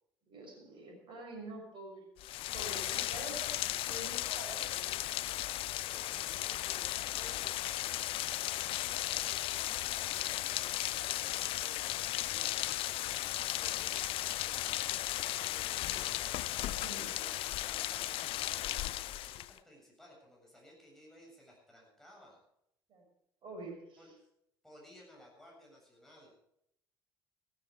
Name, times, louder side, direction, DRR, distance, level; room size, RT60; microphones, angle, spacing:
voice 1, 0.3-2.1 2.5-5.0 16.8-17.1 22.9-23.0 23.4-24.0, right 2 dB, 45° right, 2 dB, 6.2 m, -47 dB
Rain, 2.2-19.6, left 15 dB, 50° left, 0.5 m, -36 dB
voice 2, 5.7-14.0 14.4-16.1 16.8-22.4 24.0-24.1 24.6-26.3, equal, 5° left, -3 dB, 7.5 m, -58 dB
15.0 x 14.0 x 4.9 m, 0.76 s
figure-of-eight pair, 60°, 12 cm